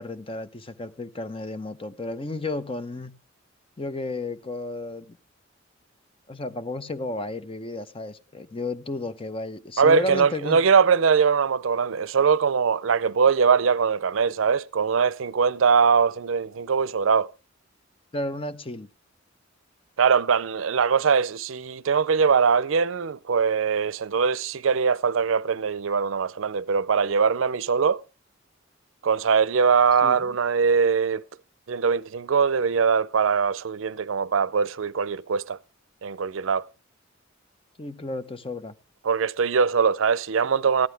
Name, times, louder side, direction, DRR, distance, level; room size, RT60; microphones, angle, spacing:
voice 1, 0.0-3.1 3.8-5.2 6.3-10.6 18.1-18.9 30.0-30.2 37.8-38.7, left 2 dB, 30° left, 0.7 m, -33 dB
voice 2, 9.8-17.3 20.0-28.0 29.0-31.2 31.7-35.6 36.0-36.7 39.0-40.9, right 6 dB, 75° right, 0.5 m, -22 dB
14.5 x 11.0 x 3.4 m
head